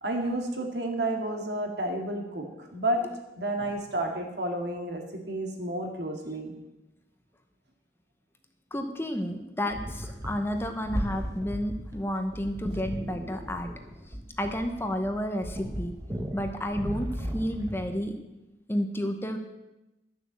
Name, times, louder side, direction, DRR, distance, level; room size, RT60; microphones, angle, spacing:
voice 1, 0.0-3.0 3.4-6.5, right 1 dB, 70° right, 3 dB, 2.1 m, -31 dB
voice 2, 8.7-13.7 14.4-15.9 16.3-18.1 18.7-19.4, equal, 15° left, 6 dB, 0.9 m, -31 dB
sound 1, 9.7-18.0, equal, 20° right, 1.4 m, -36 dB
12.0 x 7.1 x 7.4 m, 0.98 s
head